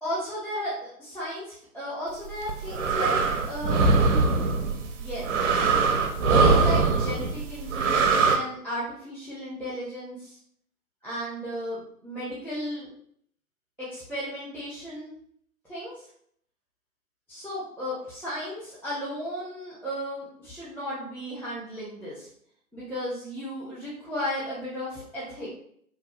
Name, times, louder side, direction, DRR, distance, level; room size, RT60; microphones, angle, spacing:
voice 1, 0.0-4.4 4.9-5.4 6.4-10.4 11.0-12.9 13.8-15.1 15.6-16.1 17.3-22.3 22.7-25.5, equal, 5° left, -20 dB, 0.4 m, -35 dB
sound 1, 2.3-8.4, right 4 dB, 55° right, 0.6 m, -22 dB
3.0 x 2.3 x 3.1 m, 0.66 s
figure-of-eight pair, 125°, 46 cm